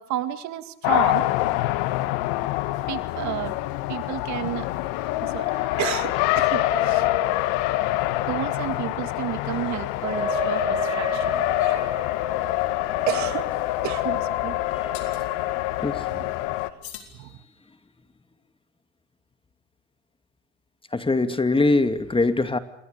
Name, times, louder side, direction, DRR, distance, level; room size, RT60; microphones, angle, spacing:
voice 1, 0.0-1.3 2.7-3.5 3.9-4.7 5.2-7.8 8.3-11.9 13.1-13.5 13.8-14.6 16.1-16.3 17.1-17.3, right 14 dB, 60° right, 11 dB, 2.1 m, -32 dB
Race car auto racing, 0.8-16.7, left 16 dB, 75° left, 1.7 m, -25 dB
Wind instrument woodwind instrument, 10.0-15.7, left 1 dB, 15° right, 2.4 m, -33 dB
sound 1, 14.9-15.3 16.8-17.9, left 10 dB, 90° left, 3.9 m, -44 dB
voice 2, 20.9-22.6, left 3 dB, 15° left, 10 dB, 2.4 m, -22 dB
28.5 x 24.0 x 6.8 m, 0.73 s
hypercardioid pair, 80°, 32 cm